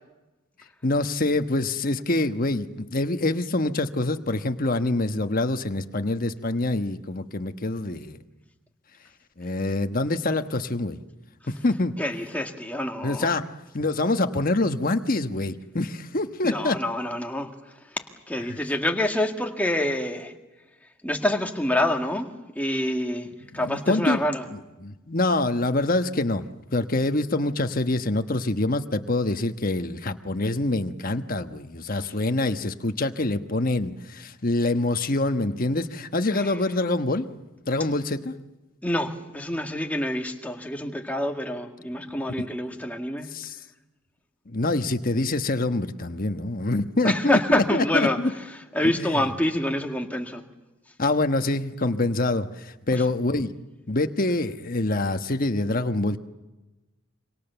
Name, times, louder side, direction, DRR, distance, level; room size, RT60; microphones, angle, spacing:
voice 1, 0.8-8.2 9.4-11.0 11.5-12.0 13.0-16.8 18.5-18.6 23.5-24.2 24.8-26.5 26.7-37.3 37.7-38.3 42.1-42.5 43.3-43.6 44.5-48.3 48.8-49.2 51.0-53.5 53.9-56.2, left 2 dB, 45° left, 8 dB, 1.3 m, -25 dB
voice 2, 12.0-13.3 16.4-17.5 18.3-20.3 21.0-22.3 22.6-23.3 23.5-24.4 38.8-43.3 47.0-48.2 48.7-50.4 52.9-53.0, left 1 dB, 5° left, 3 dB, 2.0 m, -26 dB
27.5 x 25.5 x 7.0 m, 1.1 s
head